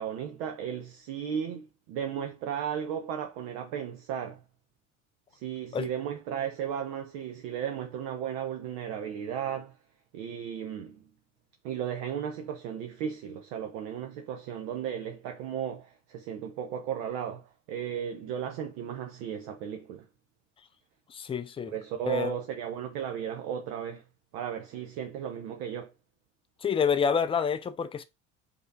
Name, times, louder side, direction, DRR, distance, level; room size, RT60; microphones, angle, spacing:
voice 1, 0.0-4.4 5.3-9.8 10.1-11.0 11.6-20.1 21.7-24.0 24.3-25.9, right 8 dB, 60° right, 0.7 m, -35 dB
voice 2, 21.1-21.7 22.1-22.3 26.6-28.0, left 6 dB, 15° left, 0.4 m, -28 dB
4.8 x 2.7 x 2.6 m
figure-of-eight pair, 60°, 38 cm